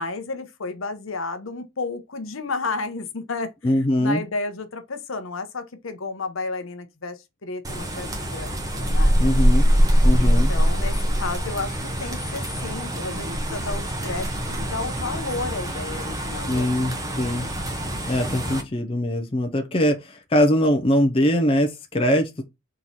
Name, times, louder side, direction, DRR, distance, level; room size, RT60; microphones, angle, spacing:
voice 1, 0.0-3.5 4.0-9.2 10.2-17.0 18.3-18.7, left 3 dB, 70° left, 0.8 m, -32 dB
voice 2, 3.6-4.2 9.2-9.7 10.0-10.5 16.5-17.5 18.1-22.4, equal, 25° left, 0.6 m, -22 dB
sound 1, 7.6-18.6, equal, 15° right, 0.8 m, -23 dB
3.7 x 3.1 x 4.0 m
head